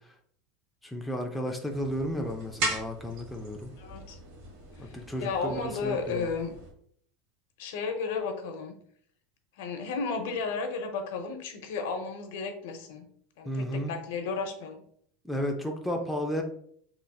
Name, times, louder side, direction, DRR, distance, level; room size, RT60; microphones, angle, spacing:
voice 1, 0.8-3.7 4.8-6.3 13.5-13.9 15.2-16.4, equal, ahead, 0.4 m, -33 dB
sound 1, 1.7-6.7, right 2 dB, 60° right, 1.3 m, -38 dB
voice 2, 3.8-4.2 4.9-6.5 7.6-8.7 9.6-13.1 13.4-14.8, left 4 dB, 70° left, 0.7 m, -33 dB
4.1 x 3.1 x 2.3 m
supercardioid pair, 150°, 0 cm